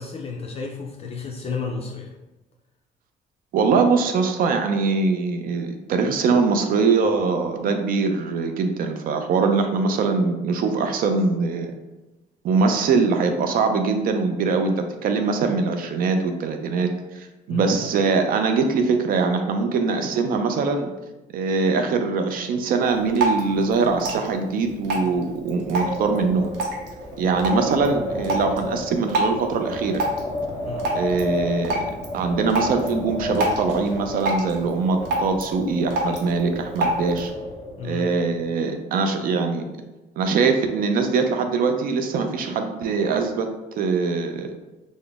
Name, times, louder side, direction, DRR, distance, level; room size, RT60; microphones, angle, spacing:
voice 1, 0.0-2.1 17.5-17.8 30.6-30.8 37.8-38.1, left 4 dB, 35° left, 0 dB, 0.4 m, -32 dB
voice 2, 3.5-11.7 12.4-16.9 17.1-20.9 21.3-26.5 27.2-30.0 30.9-31.9 32.1-37.3 37.8-39.6 40.2-43.5 43.8-44.5, right 4 dB, 60° right, 6 dB, 0.4 m, -22 dB
Drip, 22.8-37.3, right 1 dB, 85° right, 0.7 m, -29 dB
Wind, 25.5-38.1, left 1 dB, 15° left, 0.8 m, -32 dB
3.8 x 2.0 x 3.4 m, 1.0 s
cardioid pair, 110°, 17 cm